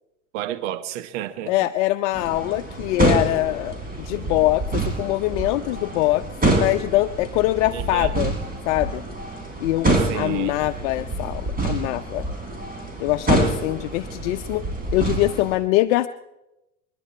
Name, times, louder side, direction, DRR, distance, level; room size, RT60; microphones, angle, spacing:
voice 1, 0.3-1.7 7.7-8.1 10.1-10.6, right 12 dB, 65° right, 1.3 m, -31 dB
voice 2, 1.5-8.4 8.7-9.0 9.6-12.3 13.0-14.6 14.9-16.1, left 17 dB, 65° left, 0.7 m, -23 dB
sound 1, 2.1-15.6, right 2 dB, 20° right, 4.9 m, -26 dB
27.5 x 11.0 x 4.3 m
hypercardioid pair, 80°, 38 cm